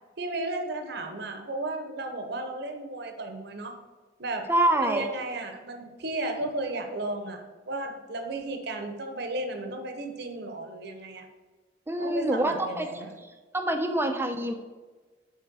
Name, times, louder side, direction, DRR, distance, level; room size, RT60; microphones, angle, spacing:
voice 1, 0.2-3.8 4.2-4.4 4.7-11.3 12.0-13.1, right 2 dB, 60° right, 5 dB, 1.0 m, -34 dB
voice 2, 4.5-5.1 11.9-13.0 13.5-14.5, right 1 dB, 15° right, 6 dB, 0.7 m, -26 dB
6.6 x 4.3 x 6.2 m, 1.3 s
head